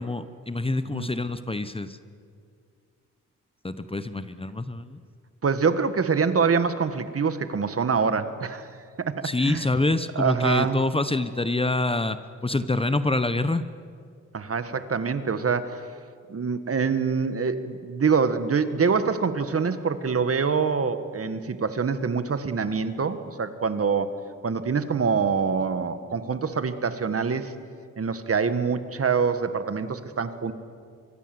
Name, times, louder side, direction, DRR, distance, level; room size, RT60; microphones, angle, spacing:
voice 1, 0.0-2.0 3.6-5.0 9.2-13.6, left 2 dB, 15° left, 12 dB, 1.0 m, -26 dB
voice 2, 5.4-8.7 9.0-9.7 10.1-10.8 14.3-15.9 16.3-24.1 24.4-27.5 28.0-30.5, right 5 dB, 45° right, 11 dB, 1.7 m, -25 dB
24.5 x 22.5 x 7.9 m, 2.2 s
cardioid pair, 75°, 33 cm